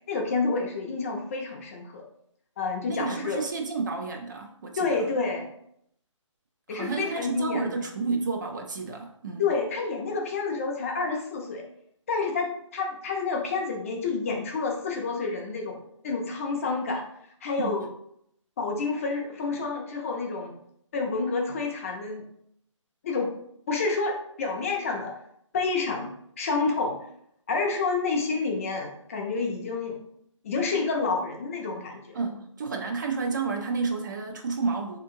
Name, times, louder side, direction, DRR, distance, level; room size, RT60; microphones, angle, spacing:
voice 1, 0.1-2.0 2.6-3.4 4.8-5.5 6.7-7.7 9.4-11.6 12.1-15.8 16.0-17.0 17.4-17.9 18.6-20.6 20.9-22.3 23.0-23.3 23.7-25.1 25.5-27.0 27.5-30.0 30.4-32.2, left 4 dB, 25° left, 1 dB, 0.4 m, -29 dB
voice 2, 2.9-5.1 6.7-9.5 17.6-17.8 32.1-35.0, right 4 dB, 35° right, 3 dB, 0.4 m, -31 dB
3.5 x 2.8 x 2.5 m, 0.71 s
figure-of-eight pair, 145°, 17 cm